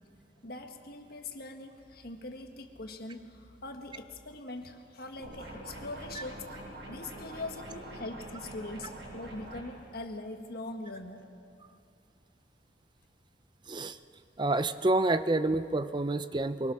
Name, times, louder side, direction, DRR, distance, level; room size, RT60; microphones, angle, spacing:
voice 1, 0.4-11.2, left 2 dB, 55° left, 4 dB, 1.6 m, -42 dB
sound 1, 5.2-9.6, right 1 dB, 75° right, 6.3 m, -45 dB
voice 2, 13.7-14.0 14.4-16.7, right 2 dB, 25° right, 12 dB, 0.5 m, -28 dB
22.5 x 21.0 x 6.4 m, 2.4 s
head